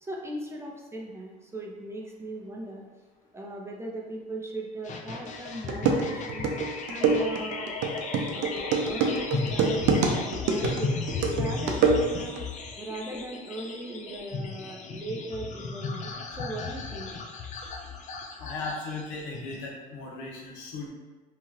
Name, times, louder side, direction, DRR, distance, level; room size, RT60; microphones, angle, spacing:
voice 1, 0.0-2.8 3.3-6.5 6.9-7.7 8.3-9.9 10.5-11.0 11.3-12.5 12.8-17.1, right 1 dB, 15° right, -1 dB, 0.5 m, -38 dB
sound 1, 4.8-19.6, left 4 dB, 40° left, 0.4 m, -35 dB
sound 2, 5.3-5.4 5.7-12.4, right 4 dB, 70° right, 0.5 m, -26 dB
voice 2, 18.4-20.9, left 3 dB, 80° left, -1 dB, 0.7 m, -37 dB
2.8 x 2.3 x 3.1 m, 1.3 s
supercardioid pair, 90°, 19 cm